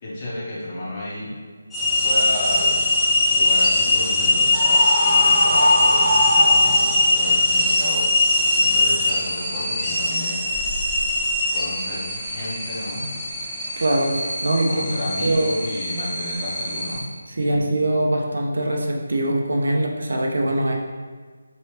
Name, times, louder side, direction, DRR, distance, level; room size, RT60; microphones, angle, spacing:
voice 1, 0.0-1.3 2.0-2.8 3.3-10.5 11.5-13.1 14.6-17.0 17.4-17.7, left 1 dB, 30° left, -7 dB, 0.9 m, -32 dB
sound 1, 1.7-17.0, left 2 dB, ahead, 0.5 m, -21 dB
Screaming, 4.5-7.2, equal, 25° right, 0.9 m, -22 dB
voice 2, 13.8-15.5 17.4-20.8, right 1 dB, 65° right, 1 dB, 0.5 m, -22 dB
3.0 x 2.9 x 3.2 m, 1.5 s
figure-of-eight pair, 155°, 0 cm